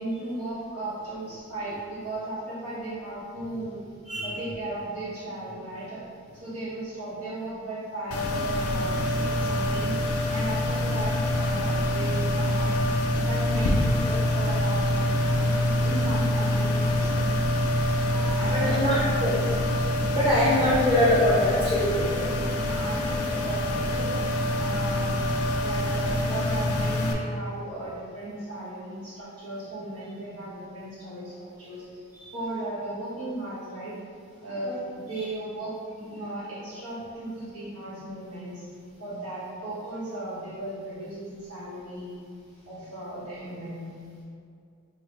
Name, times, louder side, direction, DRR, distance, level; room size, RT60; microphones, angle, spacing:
voice 1, 0.0-3.8 4.2-6.0 6.4-12.8 13.2-15.5 15.8-17.4 18.0-19.5 20.4-20.8 22.5-24.2 24.6-25.2 25.6-32.0 32.3-33.9 34.4-38.7 39.0-42.2 42.7-43.9, right 1 dB, 85° right, -11 dB, 1.3 m, -36 dB
sound 1, 8.1-27.1, left 1 dB, 75° left, 0.4 m, -25 dB
voice 2, 18.5-19.3 20.1-22.2 32.1-32.2 34.6-34.8, left 1 dB, 20° right, -9 dB, 0.6 m, -23 dB
4.7 x 2.2 x 3.0 m, 2.3 s
head